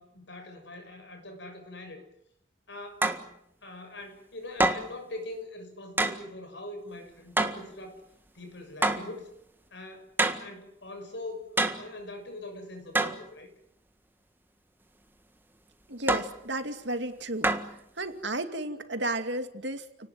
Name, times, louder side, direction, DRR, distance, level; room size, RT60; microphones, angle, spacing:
voice 1, 0.0-2.0 2.7-3.1 3.6-8.0 8.3-9.3 9.7-10.1 10.4-13.5, left 2 dB, 65° left, 6 dB, 6.7 m, -42 dB
sound 1, 3.0-3.3 4.6-5.0 6.0-6.2 7.4-7.7 8.8-9.1 10.2-10.5 11.6-11.9 12.9-13.2 16.1-16.4 17.4-17.8, right 2 dB, 10° right, 1.6 m, -26 dB
voice 2, 15.9-17.5 18.0-20.1, right 1 dB, 60° right, 7 dB, 2.5 m, -33 dB
30.0 x 19.0 x 9.5 m, 0.78 s
head